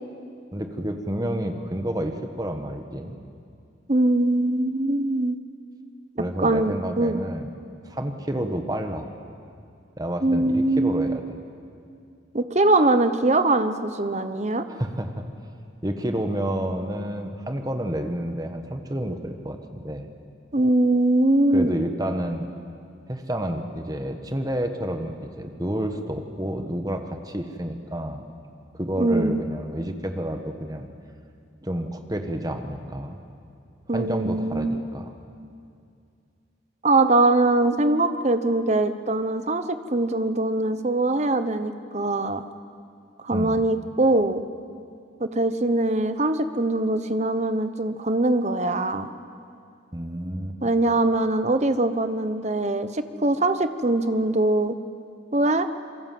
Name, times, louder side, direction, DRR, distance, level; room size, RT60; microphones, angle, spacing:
voice 1, 0.5-3.2 6.2-7.5 7.8-9.1 10.0-11.2 14.7-15.2 15.8-20.1 21.5-22.5 23.1-28.2 28.7-30.9 31.6-33.2 33.9-35.1 43.3-43.7 49.9-50.6, right 1 dB, 20° right, 6 dB, 1.3 m, -30 dB
voice 2, 3.9-5.4 6.4-7.2 10.2-11.2 12.3-14.7 20.5-21.7 29.0-29.4 33.9-34.8 36.8-42.4 43.2-44.4 45.2-49.1 50.6-54.7 55.3-55.7, right 2 dB, 35° right, 10 dB, 1.0 m, -22 dB
27.0 x 22.5 x 7.7 m, 2.4 s
head